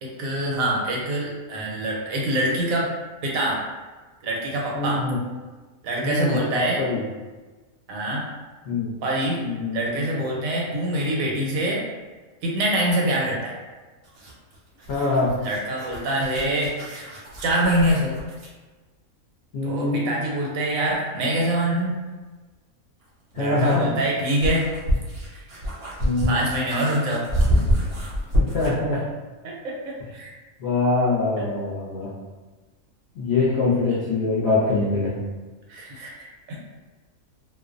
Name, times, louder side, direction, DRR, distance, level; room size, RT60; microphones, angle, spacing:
voice 1, 0.0-2.9 3.2-3.6 4.2-5.1 5.8-6.8 7.9-8.2 9.0-9.4 9.7-11.8 12.4-13.6 15.4-16.7 17.4-18.2 19.6-22.0 23.3-24.7 25.3-25.4 26.3-27.3 29.4-30.3 31.4-31.5 33.4-33.5 35.7-36.6, right 1 dB, 75° right, -3 dB, 1.0 m, -25 dB
voice 2, 4.7-5.2 6.0-6.4 6.8-7.0 8.7-8.9 9.4-10.0 14.9-15.3 19.5-20.0 23.3-23.8 26.0-26.4 28.5-29.0 30.6-32.1 33.2-35.2, left 3 dB, 60° left, -7 dB, 0.7 m, -23 dB
sound 1, 14.0-18.6 20.9-21.0 23.0-28.8, equal, 55° right, 0.7 m, -27 dB
2.4 x 2.1 x 2.4 m, 1.3 s
omnidirectional pair, 1.5 m